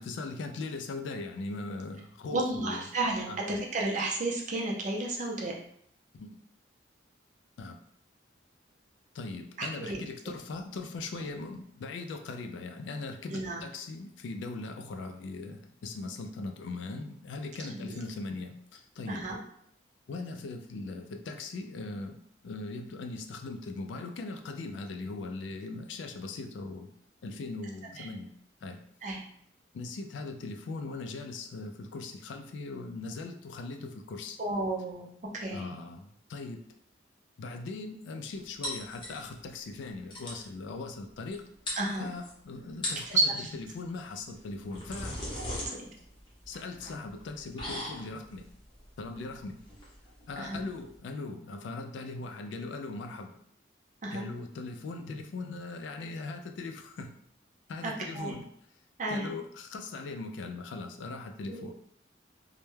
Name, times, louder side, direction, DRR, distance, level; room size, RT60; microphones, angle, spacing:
voice 1, 0.0-2.9 3.3-3.4 6.1-6.4 7.6-7.8 9.1-19.3 20.1-26.9 27.2-28.3 28.6-28.8 29.7-34.4 35.5-36.6 37.4-41.4 42.0-43.1 43.3-45.2 46.5-48.5 49.0-49.6 50.3-53.4 54.1-57.1 57.7-58.5 59.1-61.8, left 3 dB, 75° left, 6 dB, 0.3 m, -39 dB
voice 2, 2.3-5.5 9.6-10.0 13.3-13.6 17.8-17.9 19.1-19.4 28.0-28.1 29.0-29.2 34.4-35.1 35.4-35.7 41.8-42.1 43.1-43.5 45.4-45.6 50.4-50.6 54.0-54.2 57.8-58.3 59.0-59.3 61.5-61.7, right 2 dB, 40° right, -2 dB, 0.5 m, -32 dB
sound 1, 38.6-39.5 39.8-39.9 40.1-40.5 41.3-41.4 41.7-42.3 42.7-43.2 44.3-51.0, left 1 dB, 25° left, 0.6 m, -39 dB
2.2 x 2.1 x 3.1 m, 0.68 s
head